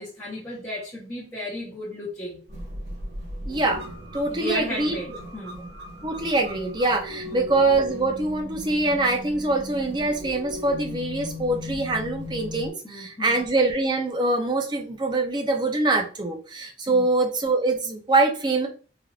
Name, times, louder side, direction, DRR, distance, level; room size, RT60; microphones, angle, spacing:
voice 1, 0.0-2.4 4.3-5.6 7.3-7.5 12.8-13.4 16.9-17.2, left 1 dB, 15° left, -6 dB, 0.7 m, -35 dB
sound 1, 2.5-12.7, left 1 dB, 90° right, 1.1 m, -37 dB
voice 2, 3.4-3.8 4.1-5.0 6.0-18.7, right 2 dB, 25° right, 3 dB, 0.5 m, -24 dB
3.3 x 2.5 x 2.4 m, 0.38 s
head